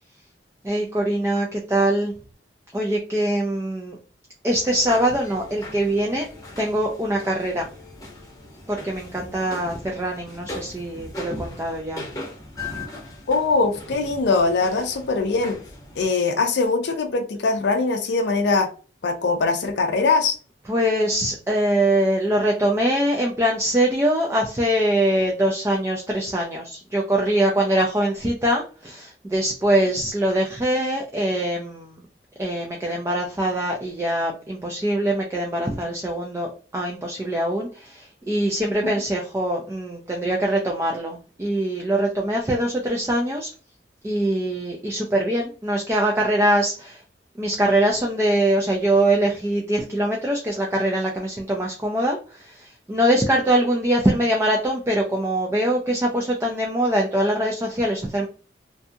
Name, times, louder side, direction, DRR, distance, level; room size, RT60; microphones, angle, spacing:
voice 1, 0.6-2.1 2.7-4.0 4.4-6.3 6.6-7.7 8.7-12.0 20.7-32.0 32.4-43.5 44.0-47.0 47.4-58.3, right 1 dB, 15° right, 0 dB, 0.3 m, -23 dB
sound 1, 4.5-16.1, left 2 dB, 20° left, 0.7 m, -39 dB
voice 2, 13.3-15.6 16.0-18.7 19.0-20.4, left 3 dB, 70° left, 5 dB, 0.4 m, -21 dB
2.6 x 2.6 x 2.3 m, 0.37 s
head